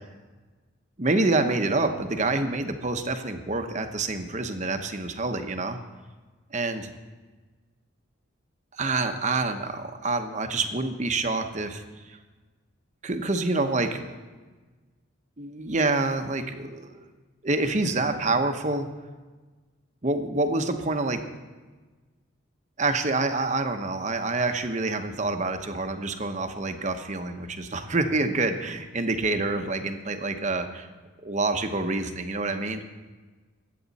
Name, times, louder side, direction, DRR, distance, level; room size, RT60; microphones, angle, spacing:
voice 1, 1.0-5.8 6.5-6.9 8.7-12.2 13.0-14.2 15.4-17.0 17.4-18.9 20.0-21.2 22.8-30.9 31.2-32.8, right 2 dB, 35° right, 6 dB, 0.9 m, -27 dB
21.0 x 8.5 x 4.1 m, 1.3 s
head